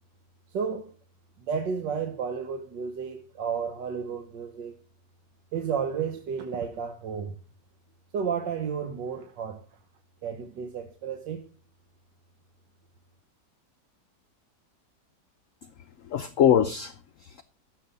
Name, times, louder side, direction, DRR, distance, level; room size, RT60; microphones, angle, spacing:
voice 1, 0.5-0.9 1.4-4.7 5.5-7.4 8.1-9.7 10.2-11.5, right 6 dB, 80° right, 1.7 m, -32 dB
voice 2, 16.0-17.4, left 9 dB, 60° left, 0.9 m, -24 dB
13.5 x 7.4 x 5.2 m
omnidirectional pair, 1.9 m